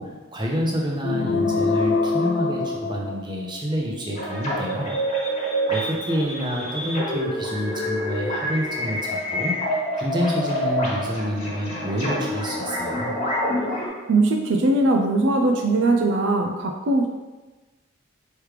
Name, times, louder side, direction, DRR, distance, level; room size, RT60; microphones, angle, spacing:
voice 1, 0.0-4.9 5.7-9.5 10.0-13.1, equal, 20° right, -1 dB, 0.6 m, -28 dB
sound 1, 1.0-3.7, left 4 dB, 65° left, 0.3 m, -24 dB
sound 2, 4.1-13.9, equal, 30° left, 1.2 m, -27 dB
voice 2, 14.1-17.1, right 2 dB, 65° right, 3 dB, 0.4 m, -20 dB
4.9 x 3.2 x 3.2 m, 1.2 s
head